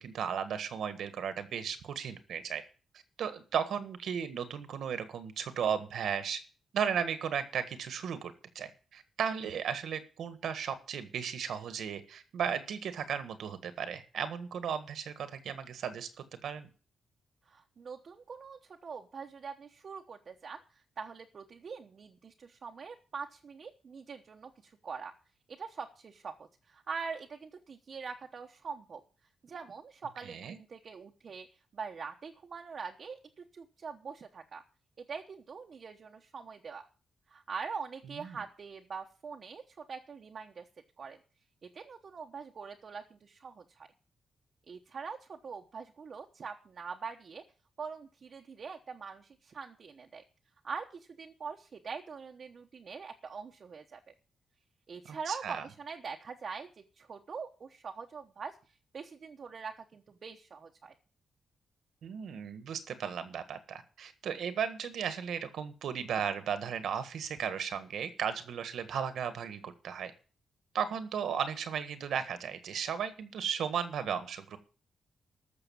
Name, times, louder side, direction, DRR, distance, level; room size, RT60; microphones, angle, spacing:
voice 1, 0.0-2.6 3.2-6.4 6.7-16.1 16.4-16.7 30.2-30.6 38.0-38.4 55.1-55.7 62.0-70.1 70.7-74.6, right 7 dB, 80° right, 11 dB, 1.6 m, -35 dB
voice 2, 17.5-20.6 21.0-25.1 25.5-29.0 29.4-31.5 31.7-34.6 35.1-36.8 37.3-40.7 41.0-41.2 41.7-43.9 44.7-47.4 47.8-50.2 50.6-54.1 54.9-58.6 58.9-60.9, right 5 dB, 45° right, 2 dB, 1.0 m, -43 dB
14.0 x 6.6 x 7.1 m, 0.38 s
wide cardioid pair, 135°, 0 cm